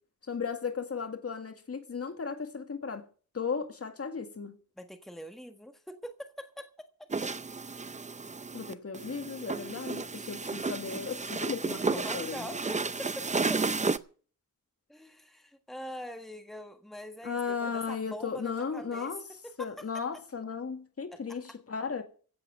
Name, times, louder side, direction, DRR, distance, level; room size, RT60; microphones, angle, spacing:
voice 1, 0.3-3.0 3.3-4.6 8.5-12.5 17.2-19.2 19.6-22.0, left 5 dB, 50° left, 2.0 m, -35 dB
voice 2, 4.8-6.7 7.0-7.1 9.5-9.8 10.1-10.3 10.7-11.4 11.9-13.6 14.9-19.1 19.4-19.9 21.1-21.6, left 1 dB, ahead, 1.5 m, -44 dB
sound 1, 7.1-14.0, right 4 dB, 25° right, 0.6 m, -33 dB
16.0 x 7.8 x 7.9 m
wide cardioid pair, 155°, 31 cm